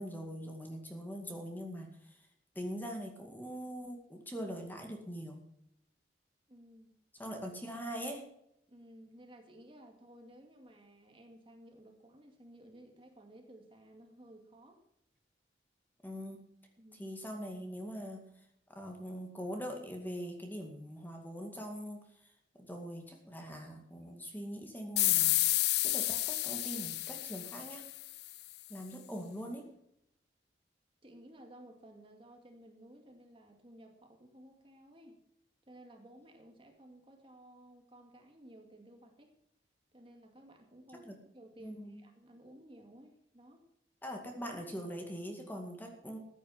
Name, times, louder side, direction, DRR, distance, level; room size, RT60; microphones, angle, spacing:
voice 1, 0.0-2.2 2.6-5.4 7.2-8.2 16.0-16.4 17.0-18.3 18.7-22.3 22.6-25.3 25.8-27.9 28.7-29.6 41.0-41.2 41.6-42.0 44.0-46.2, equal, 10° left, 2 dB, 2.1 m, -42 dB
voice 2, 6.5-6.9 8.7-14.8 16.8-17.1 31.0-35.2 35.7-39.3 39.9-43.7, right 1 dB, 30° right, 3 dB, 2.2 m, -56 dB
sound 1, 25.0-28.3, left 18 dB, 60° left, 0.4 m, -30 dB
14.5 x 9.2 x 5.8 m, 0.76 s
head